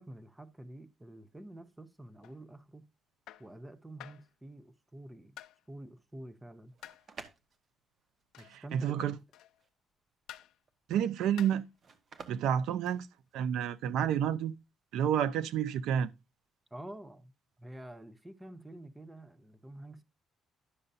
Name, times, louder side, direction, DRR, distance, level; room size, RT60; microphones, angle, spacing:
voice 1, 0.0-2.9 3.4-5.4 5.7-6.7 8.4-9.0 16.7-17.3 17.6-20.0, right 1 dB, 10° right, 0.7 m, -48 dB
sound 1, 2.2-2.4 3.3-3.5 4.0-4.3 5.4-5.6 6.8-7.1 8.3-8.6 9.3-9.6 10.3-10.6 11.4-11.7 12.9-13.1, left 13 dB, 85° left, 0.5 m, -50 dB
sound 2, 6.6-13.6, right 4 dB, 35° right, 1.2 m, -54 dB
voice 2, 8.5-9.2 10.9-11.6 12.3-13.1 13.3-14.5 14.9-16.1, right 9 dB, 80° right, 0.6 m, -30 dB
11.0 x 6.7 x 2.6 m
cardioid pair, 170°, 0 cm